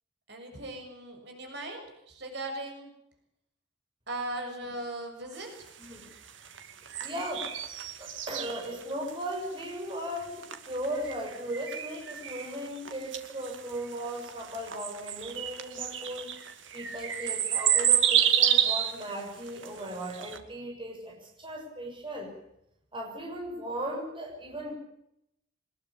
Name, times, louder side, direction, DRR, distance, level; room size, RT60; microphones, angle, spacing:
voice 1, 0.3-2.9 4.1-5.5, right 2 dB, 65° right, 3 dB, 6.9 m, -38 dB
sound 1, 5.3-20.4, right 10 dB, 85° right, 2.4 m, -30 dB
voice 2, 5.8-6.1 7.0-7.5 8.0-16.3 16.7-22.3 22.9-24.7, right 1 dB, 25° right, 1 dB, 6.6 m, -37 dB
23.0 x 21.0 x 8.7 m, 0.79 s
head